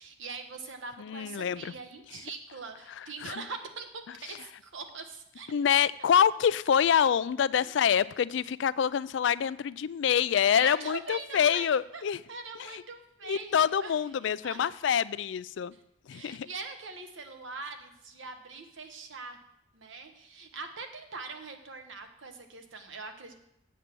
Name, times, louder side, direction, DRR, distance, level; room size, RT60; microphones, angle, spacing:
voice 1, 0.0-5.5 10.3-12.0 12.3-15.0 15.7-15.8 16.1-19.4 19.7-23.3, right 4 dB, 75° right, 6 dB, 1.1 m, -42 dB
voice 2, 1.0-1.7 3.2-3.3 5.5-12.2 12.7-12.8 13.3-15.7 16.1-16.5, left 8 dB, 70° left, 18 dB, 0.3 m, -26 dB
8.2 x 7.5 x 6.0 m, 0.80 s
head